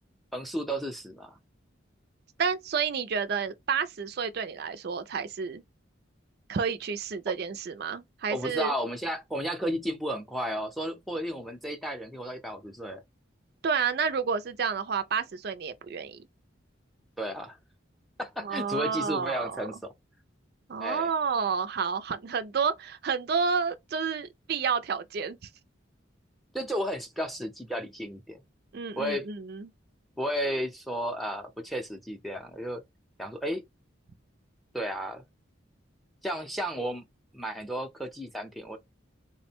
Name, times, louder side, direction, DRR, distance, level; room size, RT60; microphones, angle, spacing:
voice 1, 0.3-1.4 8.3-13.0 17.2-17.6 18.2-19.9 20.8-21.1 26.5-28.4 29.0-29.3 30.2-32.8 33.2-33.6 34.7-35.2 36.2-37.0 37.3-38.8, equal, ahead, 0.5 m, -33 dB
voice 2, 2.4-5.6 6.5-8.7 13.6-16.3 18.4-19.6 20.7-25.4 28.7-29.7, right 6 dB, 55° right, 0.4 m, -30 dB
3.6 x 2.1 x 4.3 m
head